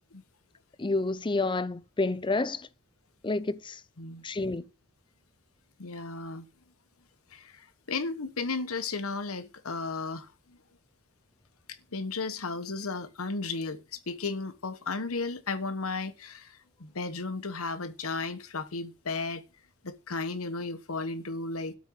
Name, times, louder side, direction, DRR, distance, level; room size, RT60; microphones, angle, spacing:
voice 1, 0.8-2.7 3.2-3.8 4.2-4.7, left 2 dB, 20° left, 0.5 m, -29 dB
voice 2, 5.8-6.4 7.3-10.6 11.7-19.4 19.8-21.8, left 3 dB, 70° left, 1.1 m, -34 dB
12.5 x 5.2 x 7.1 m
head